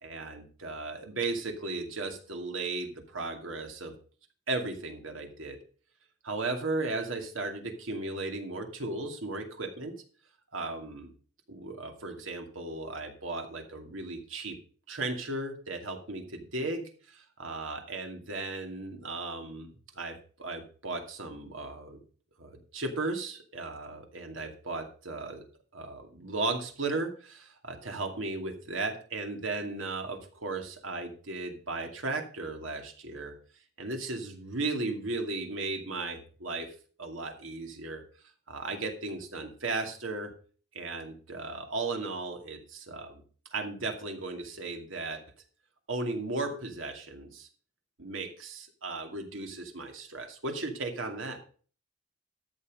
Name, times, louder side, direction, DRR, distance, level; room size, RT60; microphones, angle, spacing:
voice 1, 0.0-3.9 4.5-5.6 6.2-10.0 10.5-11.1 11.5-14.6 14.9-22.0 22.4-25.4 25.7-33.3 33.8-38.0 38.5-40.3 40.7-43.2 43.5-45.2 45.9-47.5 48.0-51.4, right 3 dB, 90° right, 4 dB, 2.4 m, -36 dB
13.0 x 7.0 x 5.4 m, 0.41 s
head